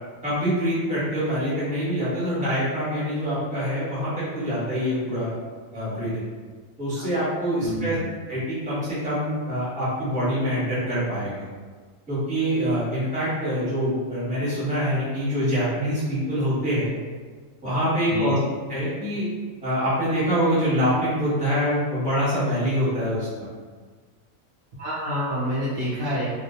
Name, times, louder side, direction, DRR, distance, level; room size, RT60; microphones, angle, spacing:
voice 1, 0.2-5.3 5.7-6.1 6.8-8.0 8.3-11.4 12.1-16.9 17.6-18.4 18.7-19.2 19.6-23.5, equal, 5° right, -11 dB, 0.8 m, -25 dB
voice 2, 7.6-8.0 18.1-18.4 24.8-26.3, equal, 65° right, -9 dB, 0.8 m, -27 dB
2.2 x 2.1 x 2.7 m, 1.5 s
omnidirectional pair, 1.5 m